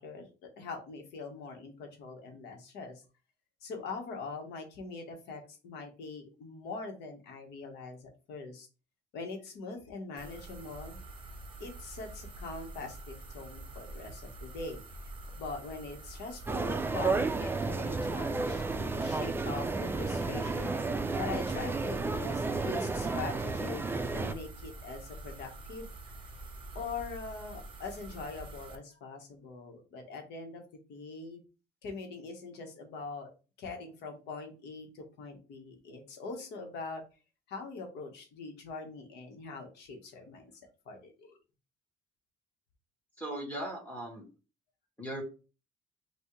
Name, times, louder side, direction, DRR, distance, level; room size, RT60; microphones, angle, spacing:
voice 1, 0.0-3.0 3.6-8.7 9.1-11.0 11.6-14.8 15.4-25.9 26.7-30.6 30.9-31.4 31.8-33.3 33.6-37.0 37.5-40.5 40.8-41.4, left 4 dB, 80° left, 3 dB, 1.4 m, -43 dB
sound 1, 10.2-28.8, right 2 dB, 30° right, 0.9 m, -46 dB
sound 2, 16.5-24.3, right 3 dB, 15° right, 0.4 m, -32 dB
voice 2, 43.2-44.3 45.0-45.2, right 1 dB, 10° left, -2 dB, 1.8 m, -38 dB
5.7 x 2.7 x 3.2 m, 0.34 s
cardioid pair, 110°, 17 cm